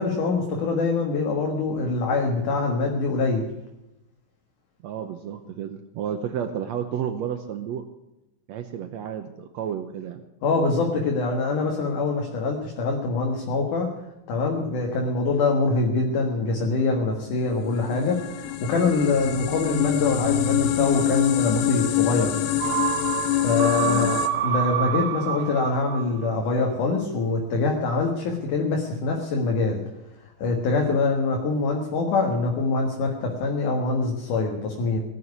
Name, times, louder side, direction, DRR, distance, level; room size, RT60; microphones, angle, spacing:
voice 1, 0.0-3.4 10.4-13.9 14.3-22.3 23.4-29.8 30.4-35.0, left 3 dB, 65° left, 1 dB, 3.1 m, -24 dB
voice 2, 4.8-7.8 8.5-10.2 23.8-24.1, right 9 dB, 75° right, 7 dB, 1.6 m, -31 dB
sound 1, 17.5-24.3, left 11 dB, 90° left, 2.8 m, -25 dB
sound 2, 22.6-26.4 26.7-26.8, right 10 dB, 90° right, 1.4 m, -28 dB
18.5 x 7.7 x 9.7 m, 0.92 s
omnidirectional pair, 4.1 m